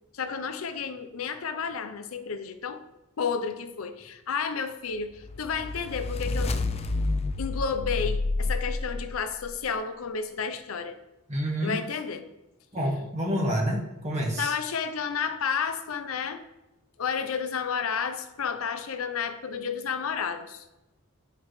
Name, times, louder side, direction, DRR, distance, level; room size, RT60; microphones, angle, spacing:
voice 1, 0.1-2.8 3.2-6.5 7.4-10.9 11.6-12.3 14.4-16.4 17.0-20.6, left 6 dB, 90° left, 9 dB, 0.6 m, -31 dB
sound 1, 5.2-9.5, left 2 dB, 30° left, 0.4 m, -29 dB
voice 2, 11.3-11.8 12.7-14.5, equal, 35° right, -2 dB, 1.6 m, -28 dB
9.2 x 4.7 x 3.2 m, 0.97 s
head